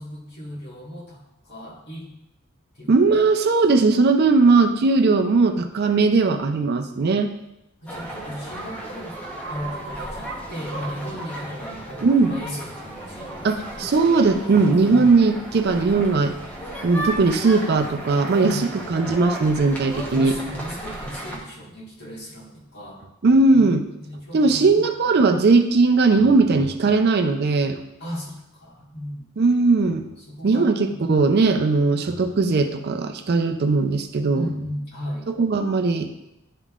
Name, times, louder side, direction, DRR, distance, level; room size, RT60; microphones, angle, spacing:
voice 1, 0.0-2.1 2.7-3.1 7.8-9.2 9.5-14.4 14.9-15.4 18.4-18.7 20.1-23.0 23.5-23.7 24.0-24.9 28.0-29.2 30.3-31.0 34.3-35.3, equal, 50° left, -4 dB, 1.7 m, -36 dB
voice 2, 2.9-7.3 12.0-12.4 13.4-16.4 16.8-20.4 23.2-23.8 24.3-27.8 29.4-30.0 30.4-34.5 35.3-36.1, right 3 dB, 50° right, 7 dB, 0.4 m, -19 dB
sound 1, 7.9-21.4, right 1 dB, 10° left, 1.0 m, -35 dB
11.0 x 3.7 x 2.4 m, 0.88 s
head